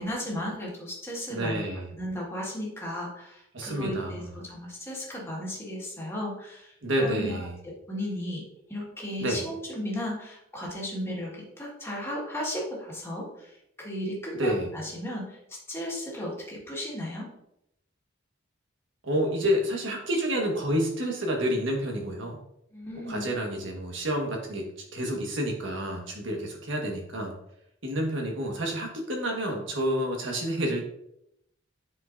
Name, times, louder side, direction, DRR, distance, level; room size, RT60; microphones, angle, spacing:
voice 1, 0.0-1.6 1.9-8.4 8.7-13.5 13.8-15.4 15.7-17.3 22.7-23.3, equal, 15° left, -4 dB, 1.8 m, -35 dB
voice 2, 1.3-1.9 3.5-4.2 6.8-7.5 9.2-9.4 14.4-14.7 19.0-22.4 23.1-27.4 27.8-30.8, equal, 70° right, 1 dB, 1.5 m, -29 dB
7.7 x 4.9 x 2.6 m, 0.78 s
head